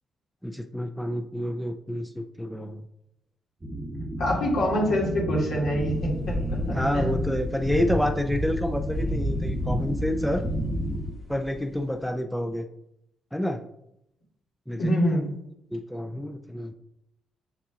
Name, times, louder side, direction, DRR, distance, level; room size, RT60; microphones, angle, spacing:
voice 1, 0.4-2.8 6.7-10.4 11.3-12.7 13.3-13.6 14.7-14.9 15.7-16.7, left 1 dB, ahead, 5 dB, 0.4 m, -28 dB
sound 1, 3.6-11.1, equal, 20° right, 1.0 m, -33 dB
voice 2, 4.2-7.1 14.8-15.3, equal, 75° left, -4 dB, 2.3 m, -26 dB
sound 2, 5.8-11.9, left 1 dB, 40° left, 1.6 m, -32 dB
6.7 x 5.9 x 2.4 m, 0.80 s
cardioid pair, 90°, 0 cm